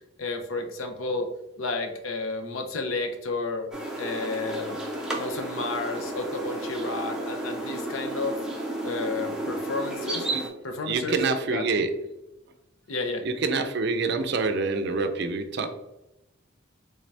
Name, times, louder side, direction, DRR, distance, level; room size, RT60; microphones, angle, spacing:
voice 1, 0.2-1.3 1.6-3.7 4.0-4.8 5.1-8.4 8.8-10.3 10.6-11.2 11.5-11.6 12.9-13.2, left 3 dB, 85° left, 5 dB, 0.6 m, -31 dB
sound 1, 3.7-10.5, right 1 dB, 5° right, 0.5 m, -32 dB
voice 2, 10.9-11.9 13.2-15.7, right 4 dB, 55° right, 7 dB, 0.4 m, -26 dB
3.5 x 2.7 x 3.2 m, 0.91 s
head